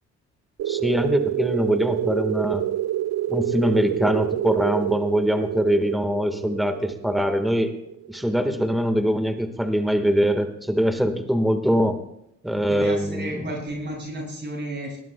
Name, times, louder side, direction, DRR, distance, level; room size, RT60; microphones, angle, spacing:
sound 1, 0.6-8.9, right 12 dB, 60° right, 0.5 m, -28 dB
voice 1, 0.7-2.6 3.3-7.7 8.1-12.0 12.4-13.3, equal, ahead, 6 dB, 1.6 m, -23 dB
voice 2, 12.6-15.0, right 1 dB, 35° right, -2 dB, 7.3 m, -32 dB
20.0 x 19.0 x 2.3 m, 0.80 s
cardioid pair, 90°, 30 cm